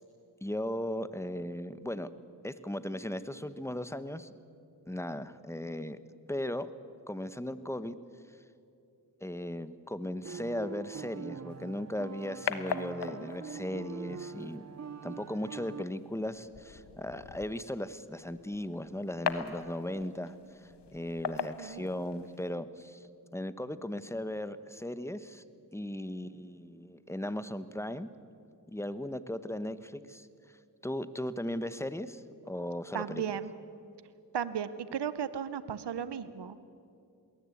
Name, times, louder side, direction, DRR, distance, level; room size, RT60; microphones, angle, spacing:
voice 1, 0.4-2.1 2.4-4.3 4.9-6.0 6.3-6.7 7.1-8.0 9.2-14.6 15.0-20.3 20.6-25.5 25.7-28.1 28.7-30.3 30.8-33.2, left 1 dB, 5° left, 13 dB, 1.0 m, -37 dB
sound 1, 10.2-15.8, right 6 dB, 40° right, 0.7 m, -44 dB
sound 2, 11.5-22.5, left 7 dB, 75° left, 1.2 m, -41 dB
voice 2, 21.4-21.9 32.9-33.5 34.3-36.6, right 8 dB, 75° right, 15 dB, 0.9 m, -35 dB
20.5 x 18.5 x 8.5 m, 2.6 s
cardioid pair, 45°, 41 cm